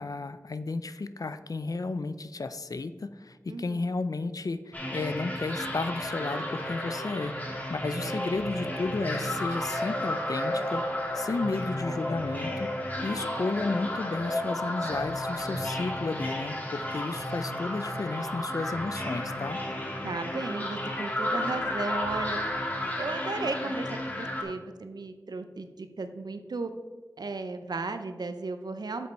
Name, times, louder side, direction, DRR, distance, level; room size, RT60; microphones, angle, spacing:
voice 1, 0.0-12.7 13.0-19.6, left 3 dB, 60° left, 12 dB, 0.4 m, -33 dB
sound 1, 4.7-24.4, left 1 dB, 25° left, 1.6 m, -32 dB
voice 2, 20.0-22.4 23.0-26.7 27.2-29.1, right 3 dB, 85° right, 8 dB, 0.6 m, -35 dB
7.5 x 5.2 x 4.5 m, 1.3 s
wide cardioid pair, 45°, 7 cm